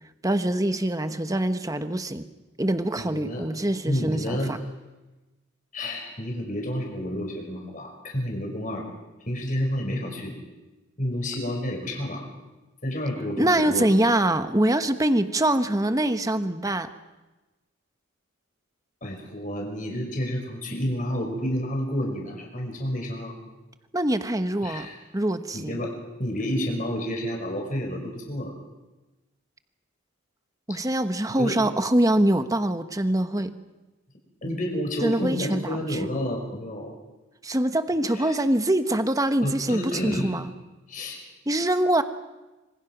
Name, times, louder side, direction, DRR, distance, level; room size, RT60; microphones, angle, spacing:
voice 1, 0.2-2.3 2.6-4.6 13.4-16.9 23.9-24.9 25.1-25.8 30.7-33.6 35.0-36.0 37.4-40.5 41.5-42.0, right 1 dB, 15° right, 9 dB, 1.2 m, -24 dB
voice 2, 3.0-3.4 3.8-4.6 5.7-8.8 9.3-10.3 11.0-12.3 12.8-13.9 19.0-23.4 24.6-25.0 25.5-25.9 26.2-28.5 31.4-31.6 34.4-36.9 38.1-38.3 39.4-40.3 40.9-41.2, equal, 40° left, 1 dB, 5.8 m, -30 dB
26.5 x 25.5 x 6.2 m, 1.1 s
head